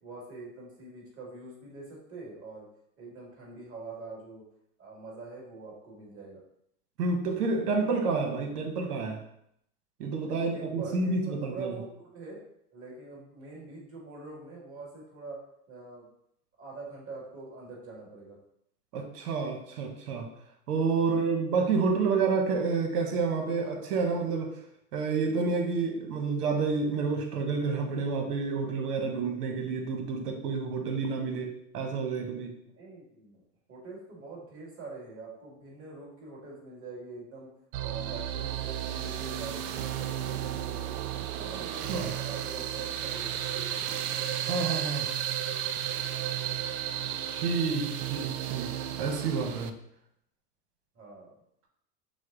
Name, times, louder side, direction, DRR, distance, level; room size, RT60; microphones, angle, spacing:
voice 1, 0.0-2.7 3.0-4.4 4.8-6.4 10.3-12.4 12.7-15.4 15.7-16.1 16.6-18.4 32.6-33.4 33.7-37.5 37.8-41.0 41.3-44.0 50.9-51.3, right 3 dB, 30° right, -3 dB, 1.8 m, -44 dB
voice 2, 7.0-9.2 10.0-11.8 18.9-20.3 20.7-24.5 24.9-32.5 41.9-42.1 44.5-45.1 47.3-48.7 49.0-49.7, right 4 dB, 85° right, 2 dB, 1.2 m, -29 dB
sound 1, 37.7-49.7, right 11 dB, 70° right, 0.6 m, -33 dB
6.2 x 2.2 x 3.8 m, 0.73 s
supercardioid pair, 120°, 45 cm